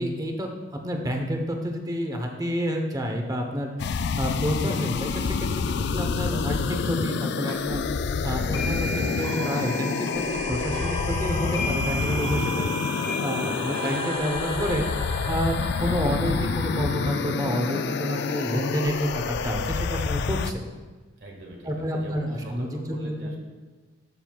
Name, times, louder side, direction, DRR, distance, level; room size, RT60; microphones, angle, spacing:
voice 1, 0.0-3.7 4.2-7.8 8.2-12.7 13.2-14.8 15.3-20.6 21.6-23.4, equal, 20° right, 3 dB, 0.9 m, -29 dB
sound 1, 3.8-20.5, left 5 dB, 60° left, 0.3 m, -28 dB
sound 2, 7.5-7.6 8.5-18.6, equal, 25° left, 1.8 m, -35 dB
voice 2, 12.5-13.7 21.2-23.4, right 1 dB, 60° right, 0 dB, 1.8 m, -44 dB
12.0 x 7.7 x 2.3 m, 1.4 s
head